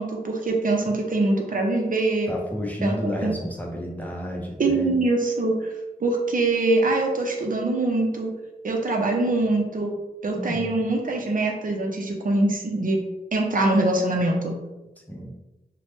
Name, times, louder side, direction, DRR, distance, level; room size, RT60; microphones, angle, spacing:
voice 1, 0.0-2.3 2.8-3.3 4.6-5.7 6.0-8.3 8.6-9.9 10.2-13.0 13.3-14.6, right 2 dB, 60° right, 1 dB, 0.5 m, -23 dB
voice 2, 2.3-5.0 10.3-10.8 15.1-15.3, equal, 10° left, -2 dB, 0.6 m, -31 dB
3.1 x 2.1 x 3.0 m, 1.0 s
wide cardioid pair, 70°, 16 cm